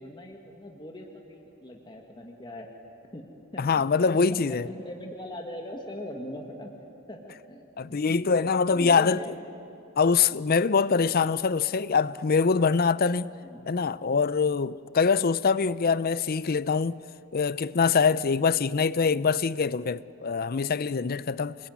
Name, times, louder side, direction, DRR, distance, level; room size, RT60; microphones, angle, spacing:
voice 1, 0.0-2.7 3.1-6.7 7.1-9.4 13.4-13.7, left 1 dB, 20° left, 1.8 m, -41 dB
voice 2, 3.6-4.7 7.8-9.2 10.0-13.3 13.7-17.0 17.3-21.6, left 5 dB, 40° left, 0.5 m, -24 dB
27.0 x 22.0 x 9.5 m
head